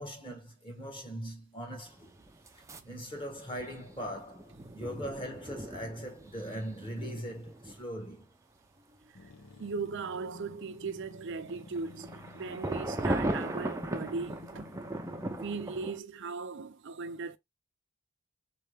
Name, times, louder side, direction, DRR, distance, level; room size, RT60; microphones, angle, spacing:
voice 1, 0.0-2.2 2.8-8.3, equal, 25° left, 1.4 m, -40 dB
sound 1, 1.9-2.9 3.2-7.8 11.5-16.0, right 1 dB, 15° right, 0.5 m, -38 dB
sound 2, 9.1-15.9, left 3 dB, 70° left, 0.8 m, -51 dB
voice 2, 9.6-14.7 15.3-17.4, right 4 dB, 60° right, 0.6 m, -38 dB
3.9 x 3.3 x 3.3 m
head